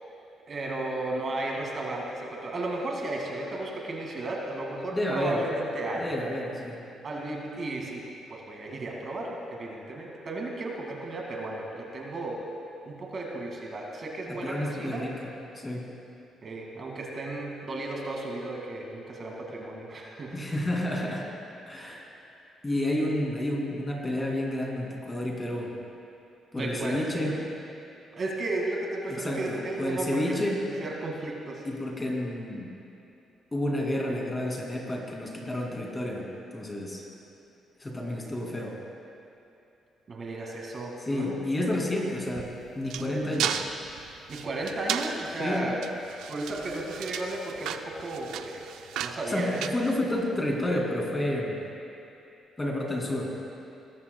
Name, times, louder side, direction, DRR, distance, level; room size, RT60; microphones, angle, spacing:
voice 1, 0.5-6.2 7.0-12.4 12.9-15.0 16.4-20.5 26.6-27.1 28.1-30.4 30.8-31.6 40.1-41.4 44.3-45.8 46.3-48.7 49.0-49.6, right 2 dB, 45° right, -1 dB, 2.1 m, -34 dB
voice 2, 4.9-5.4 6.0-6.8 14.4-15.9 20.3-21.3 21.7-22.1 22.6-25.7 26.5-27.4 29.1-30.6 31.6-32.7 33.5-37.0 37.8-38.8 41.0-43.6 45.4-45.7 49.3-51.6 52.6-53.3, left 1 dB, 20° left, -1 dB, 2.5 m, -30 dB
sound 1, 42.3-50.5, right 8 dB, 85° right, 0.5 m, -35 dB
20.5 x 13.5 x 2.3 m, 2.8 s
cardioid pair, 90°, 0 cm